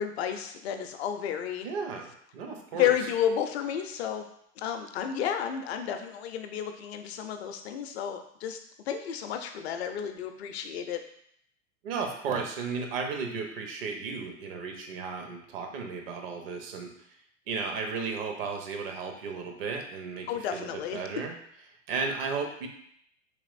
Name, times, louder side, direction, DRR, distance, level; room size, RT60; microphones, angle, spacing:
voice 1, 0.0-1.7 2.7-4.2 4.6-11.0 20.3-21.2, left 9 dB, 55° left, 6 dB, 0.5 m, -31 dB
voice 2, 1.6-2.9 11.8-16.9 17.5-20.3 20.5-21.3 21.9-22.7, right 5 dB, 50° right, 3 dB, 0.7 m, -34 dB
3.4 x 3.0 x 2.4 m, 0.70 s
figure-of-eight pair, 95°, 39 cm